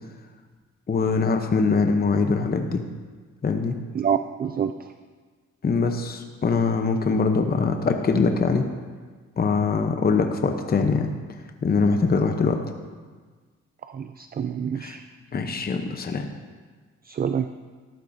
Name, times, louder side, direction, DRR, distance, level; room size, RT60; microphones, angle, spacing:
voice 1, 0.9-2.8 3.4-3.8 5.6-8.7 9.4-11.1 11.6-12.6 14.8-15.0 15.3-16.3, left 4 dB, 30° left, 5 dB, 0.9 m, -22 dB
voice 2, 3.9-4.9 13.8-15.0 17.0-17.5, right 8 dB, 30° right, 9 dB, 0.4 m, -27 dB
13.5 x 11.5 x 2.8 m, 1.5 s
cardioid pair, 90°, 30 cm